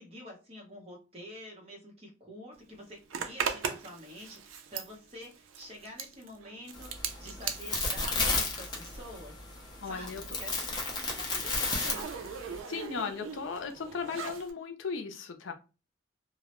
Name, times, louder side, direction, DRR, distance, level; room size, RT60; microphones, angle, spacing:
voice 1, 0.0-9.4 9.6-10.1 10.4-12.1, equal, 30° right, 0.8 m, -48 dB
Zipper (clothing), 3.1-9.3 9.6-14.5, right 6 dB, 85° right, 0.4 m, -40 dB
sound 1, 6.7-12.6, left 3 dB, 20° left, 0.5 m, -33 dB
voice 2, 9.8-10.2 12.7-15.5, left 5 dB, 75° left, 0.5 m, -36 dB
2.1 x 2.0 x 2.9 m
head